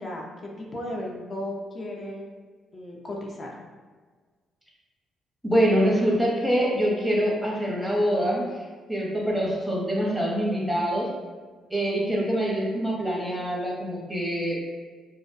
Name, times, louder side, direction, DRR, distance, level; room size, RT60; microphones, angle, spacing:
voice 1, 0.0-2.3 2.7-3.5, left 1 dB, 35° left, -1 dB, 0.5 m, -35 dB
voice 2, 5.4-8.5 8.9-11.1 11.7-14.6, equal, ahead, -4 dB, 0.7 m, -24 dB
2.4 x 2.1 x 2.6 m, 1.5 s
cardioid pair, 90°, 0 cm